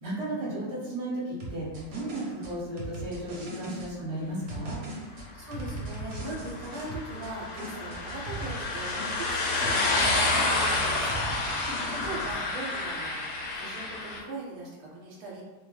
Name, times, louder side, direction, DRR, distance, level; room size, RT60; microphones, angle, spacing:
voice 1, 0.0-4.8, right 1 dB, 25° right, -7 dB, 0.9 m, -34 dB
sound 1, 1.4-3.9 4.5-7.3 7.6-9.4 9.6-12.3, right 1 dB, 60° right, 0.9 m, -39 dB
voice 2, 5.3-11.2 11.5-13.2 13.5-15.4, right 2 dB, 80° right, -3 dB, 1.0 m, -40 dB
sound 2, 6.0-14.2, left 2 dB, 85° left, 1.2 m, -29 dB
2.6 x 2.1 x 3.1 m, 1.2 s
omnidirectional pair, 1.6 m